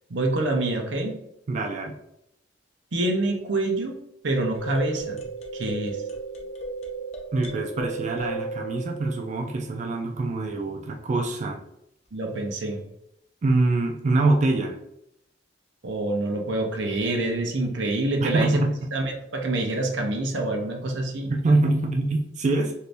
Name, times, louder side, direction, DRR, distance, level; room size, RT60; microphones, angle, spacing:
voice 1, 0.1-1.2 2.9-4.0 4.2-5.2 5.5-6.0 12.1-12.8 15.8-18.6 18.9-21.3, right 2 dB, 85° right, 2 dB, 0.7 m, -26 dB
voice 2, 1.5-1.9 7.3-11.6 13.4-14.7 18.2-18.7 21.3-22.7, right 2 dB, 40° right, 1 dB, 0.4 m, -24 dB
sound 1, 4.5-9.7, right 3 dB, 40° left, 0.5 m, -35 dB
2.7 x 2.5 x 3.3 m, 0.80 s
head